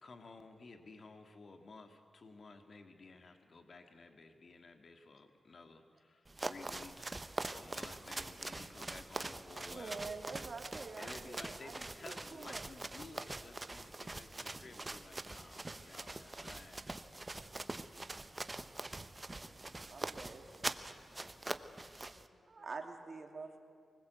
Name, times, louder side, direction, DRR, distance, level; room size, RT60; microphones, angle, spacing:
voice 1, 0.0-10.0 11.0-16.8, left 3 dB, 55° left, 6 dB, 1.9 m, -54 dB
sound 1, 6.3-22.3, right 2 dB, 25° right, 0.9 m, -44 dB
voice 2, 9.6-11.7 12.0-12.6 19.9-20.4 22.5-23.6, right 4 dB, 50° right, 4 dB, 2.6 m, -46 dB
voice 3, 15.2-19.4 19.8-20.2 20.4-21.4 21.6-21.9 22.1-22.7 23.0-23.6, left 5 dB, 90° left, 6 dB, 2.1 m, -70 dB
24.0 x 20.0 x 8.1 m, 2.3 s
cardioid pair, 75°, 0 cm